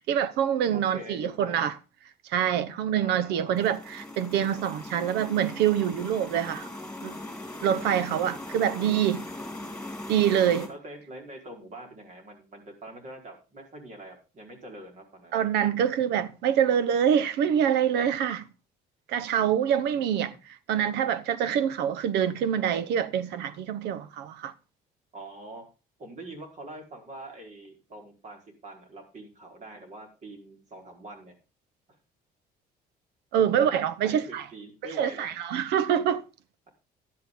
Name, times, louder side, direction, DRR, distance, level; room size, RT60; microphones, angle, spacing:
voice 1, 0.0-1.7 2.3-6.7 7.0-7.2 7.6-9.3 10.1-10.7 15.3-18.4 19.1-20.3 20.7-24.5 33.3-34.4 35.0-36.2, right 9 dB, 85° right, 1.0 m, -25 dB
voice 2, 0.7-1.7 3.0-3.5 10.7-15.4 19.9-20.4 25.1-25.6 26.0-31.3 34.0-35.3, right 1 dB, 45° right, 4.7 m, -44 dB
sound 1, 3.5-10.7, left 1 dB, 5° left, 3.7 m, -40 dB
12.0 x 10.5 x 3.8 m
cardioid pair, 110°, 17 cm